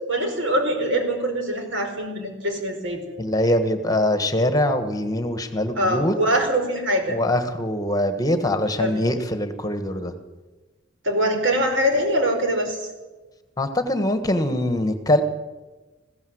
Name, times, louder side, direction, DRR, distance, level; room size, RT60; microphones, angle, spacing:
voice 1, 0.1-3.0 5.8-7.2 8.8-8.9 11.0-12.9, equal, 80° right, 4 dB, 4.7 m, -23 dB
voice 2, 3.2-6.1 7.1-10.1 13.6-15.2, left 1 dB, 20° left, 8 dB, 1.5 m, -23 dB
20.5 x 16.0 x 8.0 m, 1.2 s
head